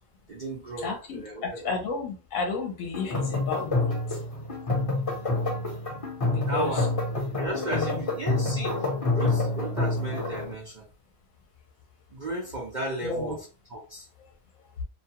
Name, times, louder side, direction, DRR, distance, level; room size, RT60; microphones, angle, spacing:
voice 1, 0.3-1.7 6.4-6.9 7.4-10.9 12.1-13.4 13.7-14.1, right 1 dB, 45° right, -3 dB, 0.6 m, -34 dB
voice 2, 0.8-4.0 6.3-6.9 7.7-8.0 13.0-13.4, left 3 dB, 70° left, 1 dB, 1.0 m, -32 dB
sound 1, 2.9-10.5, left 2 dB, 30° left, 0.7 m, -28 dB
2.7 x 2.2 x 2.8 m, 0.36 s
omnidirectional pair, 1.4 m